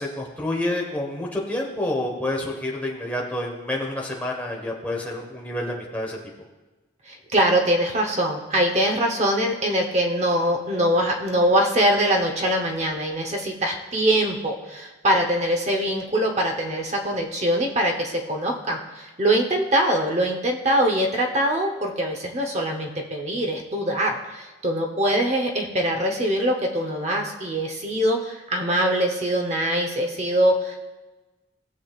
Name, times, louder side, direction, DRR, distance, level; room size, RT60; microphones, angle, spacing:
voice 1, 0.0-6.2, left 1 dB, 10° left, -2 dB, 1.3 m, -28 dB
voice 2, 7.1-30.8, right 1 dB, 35° right, 2 dB, 0.9 m, -23 dB
17.5 x 7.1 x 2.4 m, 1.2 s
head